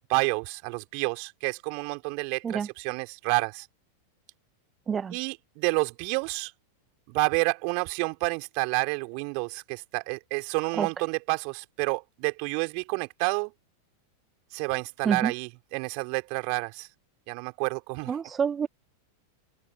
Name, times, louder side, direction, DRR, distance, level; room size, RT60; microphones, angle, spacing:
voice 1, 0.1-3.7 5.1-6.5 7.1-13.5 14.5-16.9 17.3-18.2, right 40 dB or more, 45° right, 4.2 m, -29 dB
voice 2, 18.1-18.7, right 7 dB, 20° right, 2.1 m, -27 dB
open air
figure-of-eight pair, 90°, 0 cm